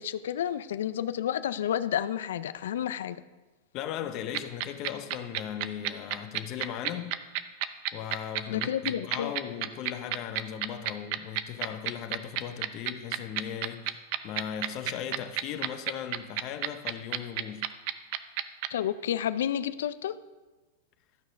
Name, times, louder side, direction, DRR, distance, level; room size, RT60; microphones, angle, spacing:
voice 1, 0.0-3.2 8.5-9.3 18.7-20.2, left 10 dB, 80° left, 0.5 m, -30 dB
voice 2, 3.7-7.2 7.9-17.7, left 9 dB, 45° left, 0.8 m, -37 dB
sound 1, 4.3-18.7, right 14 dB, 55° right, 0.6 m, -30 dB
12.5 x 6.3 x 5.2 m
hypercardioid pair, 125°, 0 cm